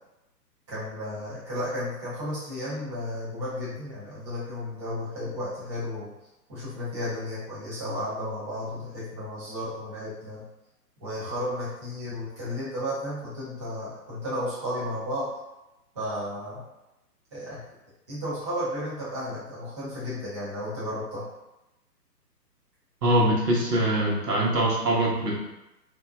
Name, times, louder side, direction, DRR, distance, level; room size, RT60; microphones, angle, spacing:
voice 1, 0.7-6.1 6.5-10.4 11.0-15.3 15.9-16.6 17.3-17.6 18.1-21.3, left 1 dB, 20° right, -11 dB, 0.5 m, -33 dB
voice 2, 23.0-25.4, right 1 dB, 70° right, -4 dB, 1.0 m, -23 dB
2.6 x 2.1 x 2.2 m, 0.95 s
figure-of-eight pair, 130°, 49 cm